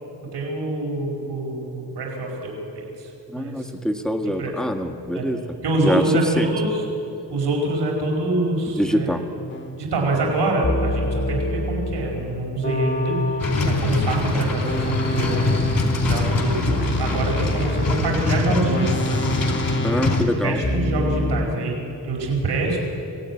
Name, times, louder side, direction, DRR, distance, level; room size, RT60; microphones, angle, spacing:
voice 1, 0.3-3.7 4.4-4.5 5.1-5.2 5.6-6.8 7.3-9.2 9.8-19.2 20.1-22.8, right 2 dB, 85° right, 0 dB, 4.8 m, -25 dB
voice 2, 3.3-6.0 6.4-6.5 8.8-9.2 19.8-20.6, equal, ahead, 5 dB, 1.7 m, -24 dB
sound 1, 9.5-9.8 10.6-14.0 14.6-21.5, equal, 30° left, 2.1 m, -27 dB
sound 2, 13.4-20.3, left 3 dB, 60° left, 4.2 m, -24 dB
25.5 x 17.0 x 9.6 m, 2.9 s
wide cardioid pair, 110°, 40 cm